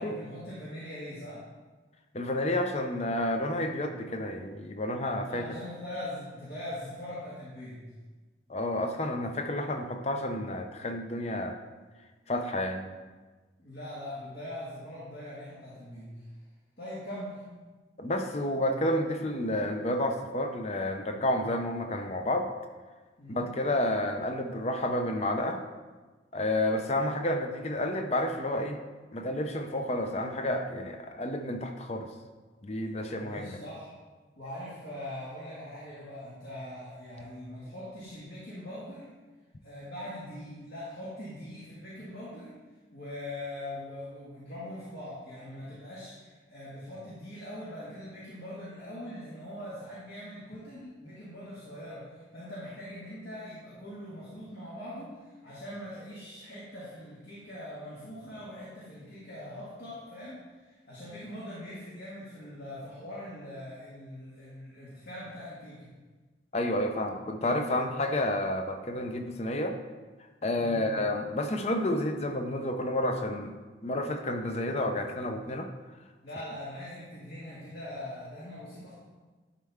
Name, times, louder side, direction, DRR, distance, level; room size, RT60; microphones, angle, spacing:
voice 1, 0.0-1.4 5.2-7.9 13.6-16.3 16.8-17.4 23.2-23.5 33.2-33.9 34.4-39.1 39.6-42.5 42.9-65.9 70.5-71.0 76.2-78.9, left 1 dB, 65° left, -8 dB, 1.9 m, -42 dB
voice 2, 2.1-5.4 8.5-11.6 12.3-12.9 18.0-22.5 23.3-25.6 26.3-28.8 29.1-32.1 32.6-33.6 66.5-69.7 70.4-73.5 73.8-75.7, left 1 dB, 35° left, 5 dB, 0.6 m, -30 dB
11.0 x 4.3 x 3.6 m, 1.3 s
head